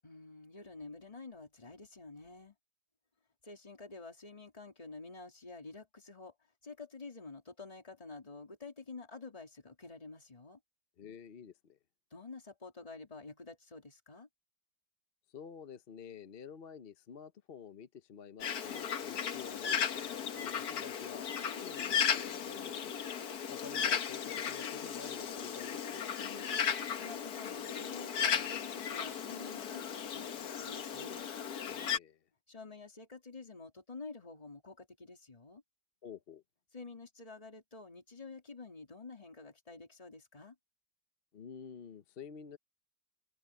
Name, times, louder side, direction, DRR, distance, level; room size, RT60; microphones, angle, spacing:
voice 1, 0.0-2.5 3.4-6.3 6.6-10.6 12.1-14.3 26.2-26.7 27.0-31.3 32.5-35.6 36.7-40.5, left 3 dB, 20° left, 3.1 m, -49 dB
voice 2, 11.0-11.8 15.3-21.3 21.6-22.9 23.5-26.1 31.4-32.2 36.0-36.4 41.3-42.6, left 7 dB, 45° left, 0.8 m, -50 dB
Bird, 18.4-32.0, left 8 dB, 65° left, 1.6 m, -36 dB
omnidirectional pair, 1.8 m